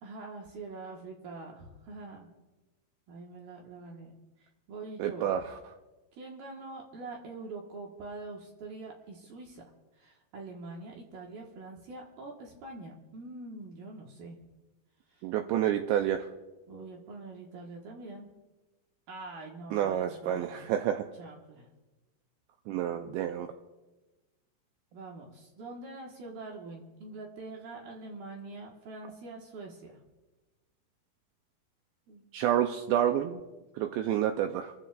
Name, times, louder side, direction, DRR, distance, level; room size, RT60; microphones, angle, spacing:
voice 1, 0.0-2.3 3.1-4.1 4.4-5.3 6.1-9.6 10.0-14.4 15.1-15.2 16.7-18.3 19.1-20.7 21.2-21.7 24.9-30.0 32.1-32.3, right 3 dB, 65° right, -1 dB, 2.7 m, -44 dB
voice 2, 5.0-5.5 15.2-16.3 19.7-21.1 22.7-23.5 32.3-33.4 33.7-34.7, right 10 dB, 90° right, 5 dB, 2.5 m, -29 dB
27.0 x 14.5 x 2.5 m, 1.1 s
omnidirectional pair, 5.8 m